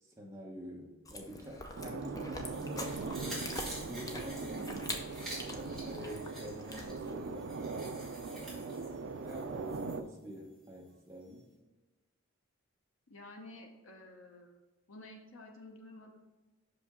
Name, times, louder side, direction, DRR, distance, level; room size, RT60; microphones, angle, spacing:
voice 1, 0.0-3.5 3.9-4.8 5.5-7.5 8.3-8.9 9.2-11.5, equal, 15° right, -2 dB, 1.0 m, -47 dB
Chewing mastication, 1.0-7.2, left 2 dB, 15° left, 0.5 m, -45 dB
sound 1, 1.8-10.0, right 4 dB, 65° right, 0.4 m, -41 dB
sound 2, 2.5-10.0 10.3-10.4, right 1 dB, ahead, 2.1 m, -48 dB
voice 2, 4.5-4.8 13.1-14.6 14.9-16.2, left 2 dB, 80° left, 1 dB, 0.8 m, -51 dB
5.6 x 5.2 x 3.7 m, 1.1 s
head